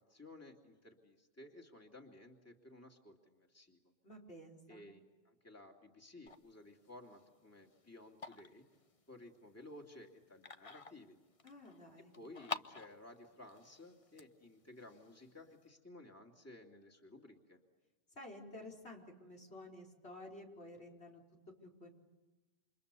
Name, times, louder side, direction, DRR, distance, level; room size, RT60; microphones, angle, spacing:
voice 1, 0.0-3.9 4.7-8.6 9.1-11.2 12.0-17.6, left 1 dB, 15° left, 1 dB, 2.7 m, -56 dB
voice 2, 4.0-4.9 11.4-12.1 18.1-21.2 21.6-21.9, left 1 dB, 85° left, 1 dB, 5.1 m, -52 dB
sound 1, 6.3-15.7, left 4 dB, 35° left, 1.0 m, -51 dB
29.5 x 27.5 x 6.9 m, 1.2 s
omnidirectional pair, 1.1 m